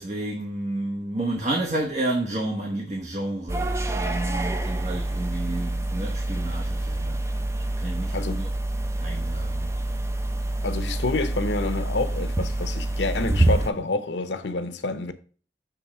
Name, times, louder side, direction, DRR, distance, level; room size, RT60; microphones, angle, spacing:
voice 1, 0.0-8.5 9.0-9.7, right 1 dB, 40° right, 1.0 m, -31 dB
sound 1, 3.5-13.7, right 1 dB, 15° right, 0.5 m, -27 dB
voice 2, 10.6-15.1, left 3 dB, 85° left, 0.8 m, -28 dB
6.9 x 3.5 x 5.9 m
head